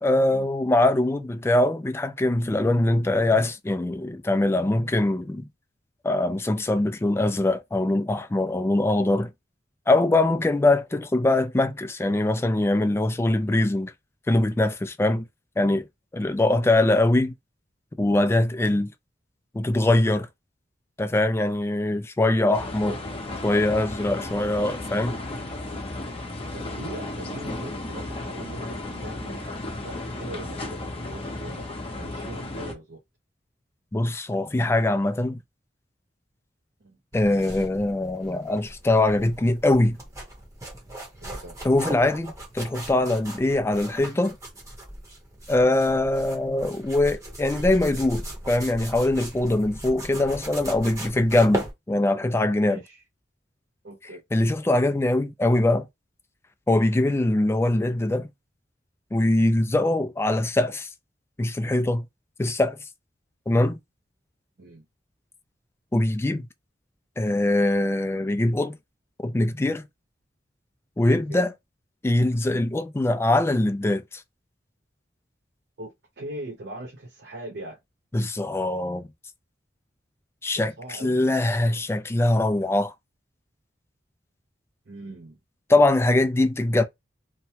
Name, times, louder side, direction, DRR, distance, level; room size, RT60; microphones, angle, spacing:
voice 1, 0.0-5.5 6.0-9.3 9.9-13.9 14.3-15.3 15.6-15.8 16.1-17.3 18.0-18.9 19.5-20.3 21.0-22.9 23.4-25.2 33.9-35.4 37.1-40.0 41.6-44.4 45.5-52.8 54.3-55.9 56.7-58.3 59.1-60.9 61.4-62.0 62.4-62.8 63.5-63.8 65.9-66.5 67.2-68.8 69.2-69.9 71.0-71.5 72.0-74.2 78.1-79.1 80.4-82.9 85.7-86.8, left 2 dB, 15° left, 0.3 m, -22 dB
sound 1, 22.5-32.7, left 2 dB, 30° left, 0.7 m, -34 dB
voice 2, 26.5-31.7 32.0-33.0 36.8-37.0 41.2-41.5 52.6-53.0 53.8-54.2 64.6-64.8 71.3-71.4 75.8-77.8 80.6-81.6 84.9-85.4, right 1 dB, 65° right, 0.7 m, -40 dB
sound 2, 37.1-51.7, right 1 dB, 20° right, 0.9 m, -38 dB
2.9 x 2.2 x 2.8 m
head